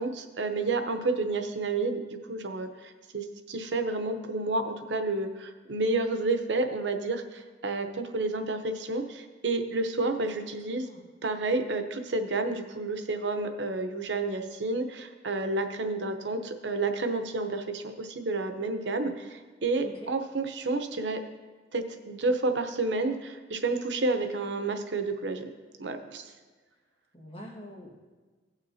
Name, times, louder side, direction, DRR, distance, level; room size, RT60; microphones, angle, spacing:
voice 1, 0.0-10.9 11.2-21.2 21.7-25.5 25.8-26.3, right 3 dB, 90° right, 7 dB, 0.8 m, -30 dB
voice 2, 10.3-11.1 19.8-20.1 27.1-27.9, equal, 30° left, -2 dB, 1.7 m, -46 dB
17.5 x 6.0 x 2.7 m, 1.3 s
head